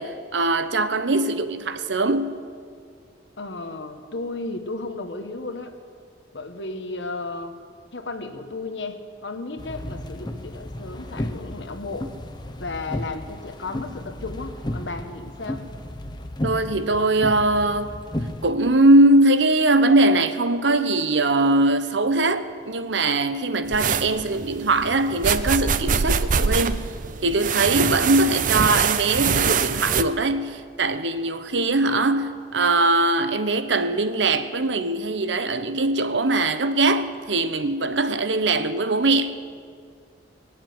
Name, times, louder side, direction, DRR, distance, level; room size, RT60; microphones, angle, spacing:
voice 1, 0.0-2.4 16.4-18.0 18.4-26.9 27.2-39.4, right 2 dB, 80° right, 0.9 m, -21 dB
voice 2, 3.4-5.7 6.3-7.6 7.9-12.1 12.6-15.6 31.5-31.6, left 3 dB, 75° left, 1.3 m, -34 dB
sound 1, 9.6-18.5, left 1 dB, 25° left, 0.8 m, -33 dB
sound 2, 23.7-30.0, right 6 dB, 45° right, 0.6 m, -24 dB
19.5 x 7.4 x 9.4 m
head